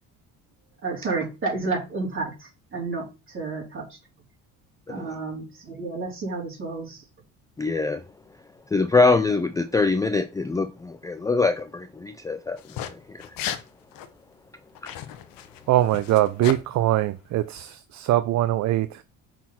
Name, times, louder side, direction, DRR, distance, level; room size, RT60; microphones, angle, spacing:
voice 1, 0.8-4.0 4.9-7.0, right 3 dB, 35° right, 3.7 m, -31 dB
voice 2, 7.6-8.0 8.7-13.4 14.8-14.9, left 3 dB, 10° left, 0.3 m, -24 dB
sound 1, 12.6-12.9 13.2-13.6 13.9-14.1 14.8-16.6, left 10 dB, 65° left, 0.9 m, -35 dB
voice 3, 15.7-19.0, right 14 dB, 50° right, 0.5 m, -22 dB
5.9 x 4.2 x 4.3 m
supercardioid pair, 85°, 36 cm